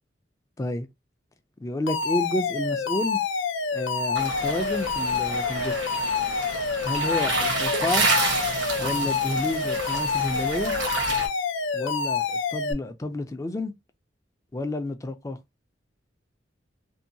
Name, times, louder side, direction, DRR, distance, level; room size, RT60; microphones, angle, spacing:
voice 1, 0.6-0.9 1.6-3.2 3.7-5.8 6.8-8.1 8.8-10.7 11.7-13.7 14.5-15.4, left 1 dB, 15° left, 0.3 m, -30 dB
Alarm, 1.9-12.7, left 5 dB, 80° left, 0.4 m, -27 dB
sound 1, 4.1-11.3, right 3 dB, 80° right, 0.9 m, -29 dB
2.7 x 2.2 x 2.5 m
head